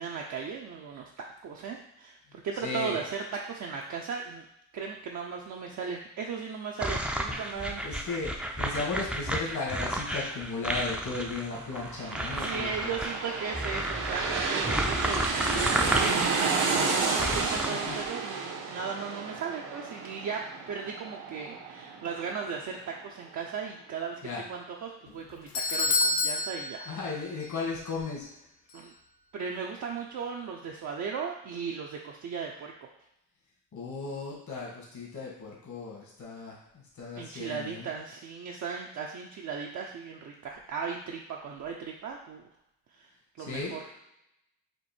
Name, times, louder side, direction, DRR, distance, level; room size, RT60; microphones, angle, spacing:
voice 1, 0.0-4.4 4.7-8.4 12.4-26.9 28.7-28.9 29.3-32.7 37.2-42.4 42.9-43.1 43.4-44.0, right 6 dB, 60° right, -1 dB, 0.6 m, -37 dB
voice 2, 2.6-3.0 7.8-8.3 8.6-12.9 17.7-18.0 24.2-24.4 26.9-28.2 33.7-36.6 37.0-37.8 43.5-43.8, left 4 dB, 60° left, -3 dB, 1.7 m, -35 dB
sound 1, 6.8-17.7, right 1 dB, 5° right, 0.4 m, -32 dB
sound 2, 11.6-22.9 23.3-23.4, right 4 dB, 80° right, 1.0 m, -31 dB
Doorbell, 25.1-27.6 27.9-28.0 28.7-28.8, left 3 dB, 90° left, 0.7 m, -29 dB
4.5 x 2.6 x 4.3 m, 0.82 s
cardioid pair, 90°, 33 cm